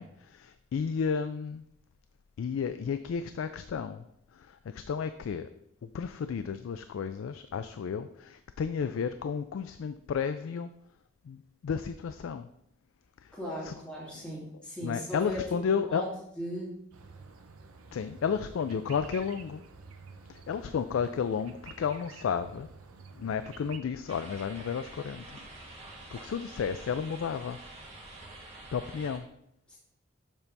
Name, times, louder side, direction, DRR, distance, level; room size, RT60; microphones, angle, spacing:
voice 1, 0.0-1.6 2.4-4.0 4.3-5.5 5.8-10.7 11.2-12.5 13.2-13.3 13.6-13.7 14.1-14.2 14.8-16.0 17.9-19.6 20.3-22.7 23.1-25.4 25.8-27.6 28.7-29.3, left 6 dB, 65° left, 10 dB, 0.3 m, -32 dB
voice 2, 13.3-16.1 16.4-16.7 29.7-29.8, equal, 5° left, -7 dB, 1.7 m, -37 dB
sound 1, 16.9-23.8, right 4 dB, 80° right, 0.7 m, -50 dB
sound 2, 24.1-29.2, right 2 dB, 30° right, 1.5 m, -47 dB
7.2 x 3.3 x 5.3 m, 0.75 s
head